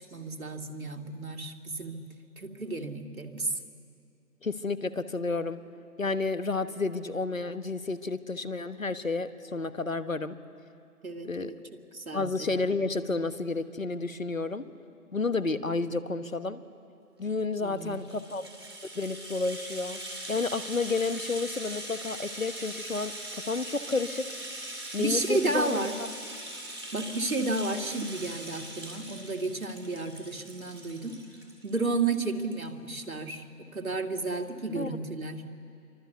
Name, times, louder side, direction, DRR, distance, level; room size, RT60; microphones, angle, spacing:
voice 1, 0.0-2.0 2.4-3.5 11.0-11.6 11.9-12.5 17.6-17.9 25.0-26.0 26.9-31.2 31.6-33.4 33.7-35.4, right 3 dB, 60° right, 4 dB, 2.3 m, -32 dB
voice 2, 4.4-5.6 6.0-10.4 11.2-11.5 12.1-14.7 15.1-16.6 17.2-18.5 18.9-20.0 20.3-24.3 24.9-25.8 34.8-35.0, left 3 dB, 60° left, 12 dB, 1.3 m, -31 dB
Rattle (instrument), 17.7-31.8 32.1-32.2 32.5-32.6, right 1 dB, 15° right, 2.2 m, -41 dB
26.5 x 24.5 x 8.2 m, 2.5 s
figure-of-eight pair, 180°, 46 cm